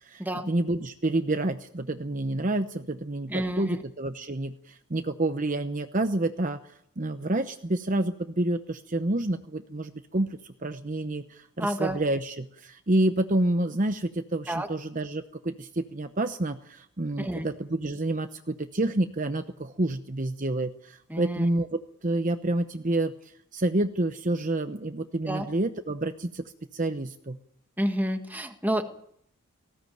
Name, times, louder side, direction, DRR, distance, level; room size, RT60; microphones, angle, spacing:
voice 1, 0.0-6.6 7.0-23.1 23.5-26.4 26.7-27.4, right 2 dB, 35° right, 8 dB, 0.8 m, -28 dB
voice 2, 3.3-3.8 11.6-12.0 14.5-14.7 17.2-17.5 21.1-21.5 25.3-25.5 27.8-28.8, right 1 dB, 10° right, 6 dB, 1.6 m, -29 dB
19.5 x 16.5 x 9.2 m, 0.70 s
head